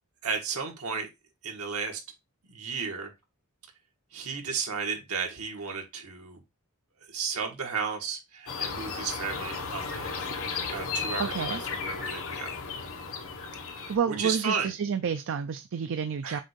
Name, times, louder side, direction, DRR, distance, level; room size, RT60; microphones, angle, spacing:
voice 1, 0.2-1.1 1.4-2.0 2.5-3.1 4.1-6.4 7.1-10.2 10.7-12.5 13.8-14.7 16.2-16.4, right 5 dB, 75° right, 1.8 m, -34 dB
sound 1, 8.5-14.0, left 5 dB, 65° left, 1.4 m, -34 dB
voice 2, 11.2-11.6 13.9-16.4, right 7 dB, 60° right, 0.4 m, -29 dB
7.4 x 2.7 x 5.1 m
head